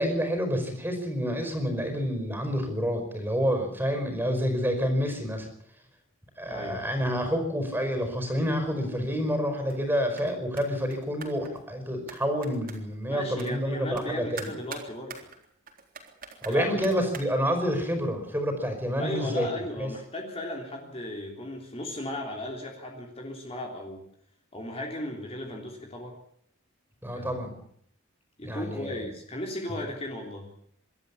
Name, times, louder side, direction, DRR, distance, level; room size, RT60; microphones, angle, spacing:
voice 1, 0.0-5.5 6.4-14.5 16.5-19.5 19.8-19.9 27.0-27.5 28.4-29.0, equal, 10° right, 7 dB, 5.2 m, -28 dB
voice 2, 6.5-6.8 13.1-15.3 16.5-16.8 19.0-24.1 24.5-26.2 27.1-27.4 28.4-30.5, left 1 dB, 30° left, 1 dB, 3.4 m, -36 dB
sound 1, 9.7-9.9 10.1-10.3 10.6-11.6 12.1-13.0 13.4-13.5 14.0-14.1 14.4-17.2, right 5 dB, 45° right, 3.9 m, -43 dB
25.5 x 13.0 x 8.5 m, 0.69 s
head